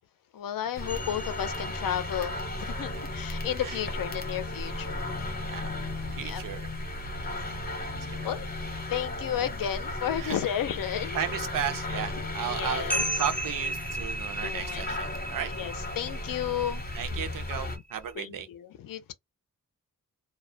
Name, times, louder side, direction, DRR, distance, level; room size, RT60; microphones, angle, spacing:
voice 1, 0.3-5.0 6.2-6.4 7.2-7.3 8.0-8.5 8.9-11.2 12.4-13.0 14.4-14.8 15.6-16.8 18.2-19.1, left 10 dB, 75° left, 0.5 m, -33 dB
sound 1, 0.7-17.8, left 2 dB, 30° left, 0.7 m, -35 dB
sound 2, 0.9-7.1 7.5-7.6 7.9-9.3 9.7-9.8 10.1-18.1, right 2 dB, 5° left, 0.3 m, -38 dB
voice 2, 6.1-6.7 8.1-8.3 10.2-10.4 11.1-12.9 13.2-15.5 16.9-18.5, right 8 dB, 70° right, 0.5 m, -34 dB
2.3 x 2.0 x 2.6 m
wide cardioid pair, 170°, 34 cm